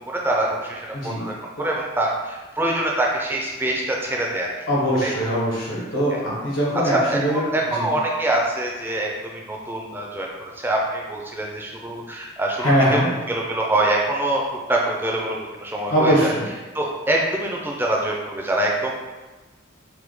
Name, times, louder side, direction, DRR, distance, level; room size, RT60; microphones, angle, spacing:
voice 1, 0.1-4.5 5.0-5.1 6.1-6.2 6.8-13.0 13.3-14.4 14.7-16.3 16.7-18.9, right 1 dB, 10° right, -2 dB, 0.4 m, -24 dB
voice 2, 0.9-1.2 4.7-7.9 12.6-13.1 15.9-16.5, equal, 80° left, -7 dB, 1.2 m, -21 dB
3.1 x 2.1 x 3.3 m, 1.2 s
head